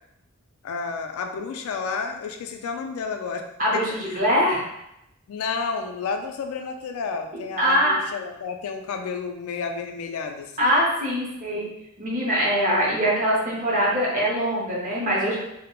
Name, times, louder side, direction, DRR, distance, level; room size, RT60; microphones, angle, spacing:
voice 1, 0.6-3.5 3.7-3.8 4.1-4.2 5.3-10.7, left 5 dB, 75° left, 5 dB, 0.3 m, -31 dB
voice 2, 3.6-4.6 7.3-8.0 10.6-11.7 12.0-15.4, equal, 40° right, -5 dB, 0.7 m, -23 dB
2.2 x 2.0 x 2.9 m, 0.83 s
head